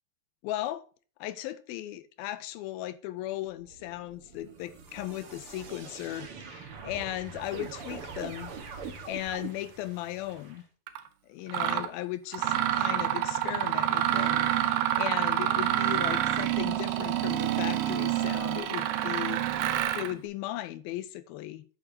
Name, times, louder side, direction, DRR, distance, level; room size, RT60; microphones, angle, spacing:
voice 1, 0.4-0.9 1.2-8.5 9.1-10.6 11.3-19.6 20.0-21.7, left 14 dB, 80° left, 2.3 m, -37 dB
sound 1, 3.5-10.6, right 5 dB, 55° right, 1.6 m, -44 dB
Mechanisms, 10.9-11.0 11.5-11.9 12.3-20.1, right 12 dB, 75° right, 2.6 m, -27 dB
8.9 x 8.7 x 2.8 m
omnidirectional pair, 4.5 m